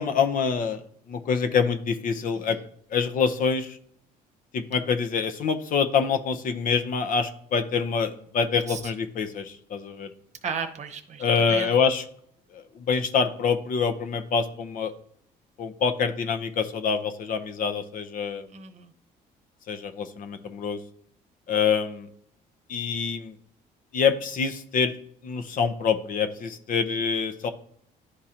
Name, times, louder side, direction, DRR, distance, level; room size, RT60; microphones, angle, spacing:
voice 1, 0.0-2.6 2.9-3.8 4.5-10.1 11.2-12.0 12.5-14.9 15.6-18.5 19.7-20.8 21.5-22.1 22.7-23.3 23.9-24.9 25.2-27.5, left 6 dB, 55° left, 9 dB, 0.7 m, -26 dB
voice 2, 10.4-11.7 18.5-18.9, right 6 dB, 45° right, 8 dB, 0.9 m, -35 dB
11.0 x 3.7 x 2.8 m, 0.64 s
cardioid pair, 110°, 17 cm